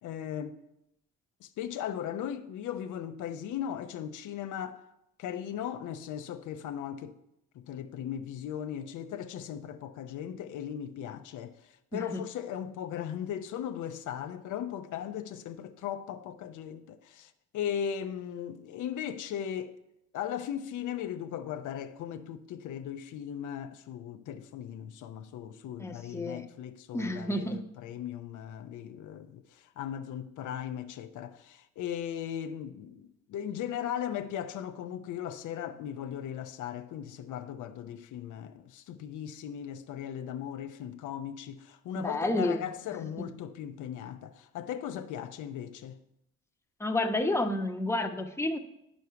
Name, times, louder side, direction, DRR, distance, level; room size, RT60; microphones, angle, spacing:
voice 1, 0.0-0.6 1.4-4.8 5.2-7.2 7.5-19.8 20.1-46.0, left 9 dB, 80° left, 0.7 m, -38 dB
voice 2, 25.8-26.4 26.9-27.6 42.0-42.6 46.8-48.6, left 1 dB, 10° left, 0.9 m, -30 dB
9.4 x 6.2 x 5.7 m
cardioid pair, 90°, 30 cm